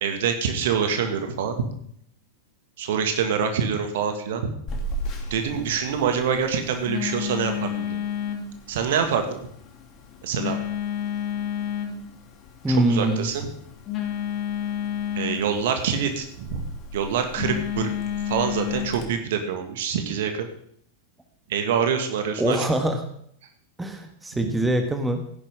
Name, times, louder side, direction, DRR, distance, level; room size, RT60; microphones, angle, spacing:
voice 1, 0.0-1.6 2.8-4.5 5.3-8.0 8.7-9.4 10.2-10.6 12.7-13.5 15.2-16.6 16.9-17.9 18.3-20.5 21.5-22.6 24.4-24.5, right 7 dB, 55° right, 6 dB, 1.9 m, -25 dB
Telephone, 4.7-19.0, left 7 dB, 35° left, 2.7 m, -31 dB
voice 2, 12.6-13.3 22.4-23.0 23.8-25.2, right 1 dB, 10° right, 6 dB, 1.5 m, -23 dB
16.0 x 10.5 x 3.7 m, 0.66 s
figure-of-eight pair, 90°, 0 cm